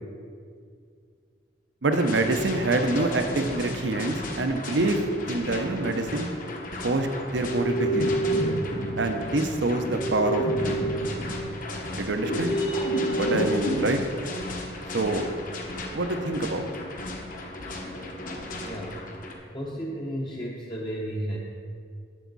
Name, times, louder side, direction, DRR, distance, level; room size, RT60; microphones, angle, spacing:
voice 1, 1.8-6.3 6.8-8.1 9.0-10.8 11.9-12.6 13.2-14.0 14.9-15.3 15.9-16.7, right 2 dB, 70° right, 7 dB, 0.8 m, -26 dB
sound 1, 1.9-19.3, left 2 dB, 45° left, 1.2 m, -36 dB
sound 2, 7.5-13.8, right 1 dB, 70° left, 2.0 m, -28 dB
voice 2, 18.6-19.1 19.5-21.4, equal, 25° left, -3 dB, 0.9 m, -33 dB
10.5 x 8.4 x 4.1 m, 2.2 s
head